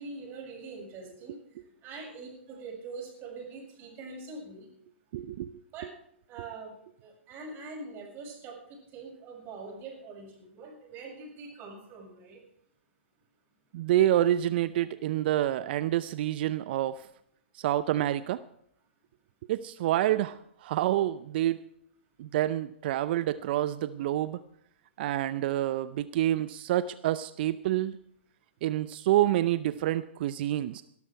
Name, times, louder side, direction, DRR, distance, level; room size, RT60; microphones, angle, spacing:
voice 1, 0.0-1.4 1.8-4.7 5.7-5.9 6.3-6.7 7.0-12.4 20.1-20.2, right 3 dB, 30° right, -1 dB, 7.1 m, -43 dB
voice 2, 5.1-5.6 13.7-17.1 17.5-18.4 19.5-21.6 22.2-24.4 25.0-28.0 28.6-30.8, right 13 dB, 55° right, 15 dB, 0.5 m, -28 dB
17.5 x 13.0 x 4.6 m, 0.70 s
hypercardioid pair, 125°, 7 cm